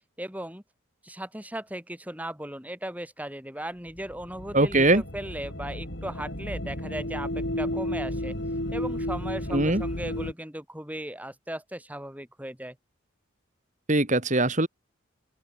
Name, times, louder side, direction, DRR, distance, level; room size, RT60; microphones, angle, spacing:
voice 1, 0.2-0.6 1.0-8.4 8.7-12.8, right 1 dB, 5° right, 7.8 m, -37 dB
sound 1, 3.9-10.3, left 1 dB, 55° left, 5.5 m, -33 dB
voice 2, 4.5-5.0 9.5-9.8 13.9-14.7, right 2 dB, 35° right, 2.5 m, -21 dB
open air
head